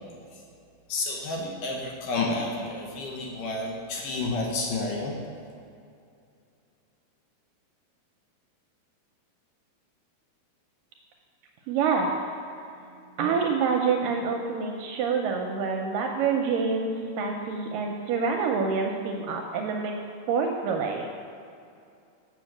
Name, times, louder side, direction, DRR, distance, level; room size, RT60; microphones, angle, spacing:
voice 1, 0.9-5.2, left 2 dB, 70° left, -1 dB, 2.3 m, -30 dB
voice 2, 11.7-12.1 13.2-19.9 20.3-21.1, right 5 dB, 80° right, 2 dB, 2.0 m, -27 dB
7.5 x 6.9 x 7.2 m, 2.5 s
omnidirectional pair, 4.4 m